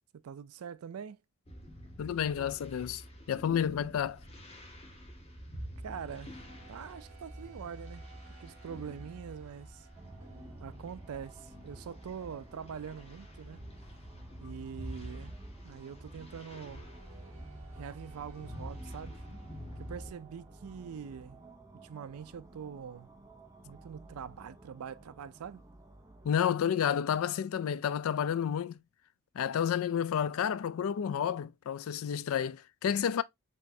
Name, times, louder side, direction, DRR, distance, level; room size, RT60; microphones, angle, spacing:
voice 1, 0.1-1.2 3.6-3.9 5.8-6.3 6.7-8.0 8.4-9.9 10.6-13.7 14.4-15.3 15.6-16.8 17.8-19.2 19.8-21.4 21.8-23.1 23.6-25.6, right 7 dB, 85° right, 0.4 m, -44 dB
sound 1, 1.5-20.1, equal, 30° left, 1.2 m, -47 dB
voice 2, 2.0-3.0 3.3-4.2 26.2-28.8 29.4-33.2, left 8 dB, 70° left, 0.3 m, -30 dB
sound 2, 5.2-21.6, right 6 dB, 65° right, 1.1 m, -61 dB
sound 3, 9.9-26.3, right 2 dB, 15° right, 0.6 m, -55 dB
4.4 x 3.1 x 2.6 m
head